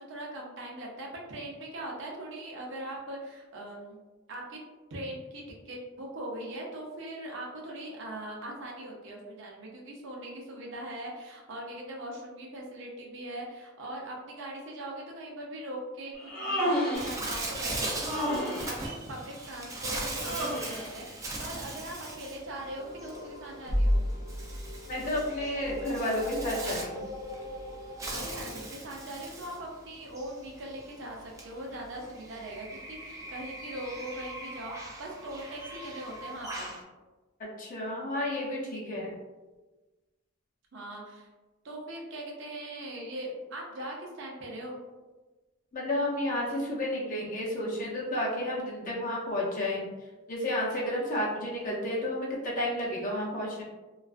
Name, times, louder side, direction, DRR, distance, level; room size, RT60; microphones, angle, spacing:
voice 1, 0.0-4.0 4.3-4.6 4.9-18.2 18.6-24.0 28.1-36.8 40.7-41.3 41.6-44.8, right 1 dB, 70° right, -1 dB, 0.6 m, -41 dB
Human voice, 16.1-17.2 18.0-18.8 20.2-20.9, equal, 5° left, 0.7 m, -30 dB
Bird, 16.9-36.8, right 2 dB, 15° right, 0.4 m, -40 dB
sound 1, 22.7-28.6, equal, 70° left, 0.8 m, -34 dB
voice 2, 24.9-27.1 37.4-39.1 45.7-49.8 50.3-53.6, left 1 dB, 45° left, -4 dB, 0.7 m, -31 dB
2.4 x 2.3 x 2.4 m, 1.2 s
head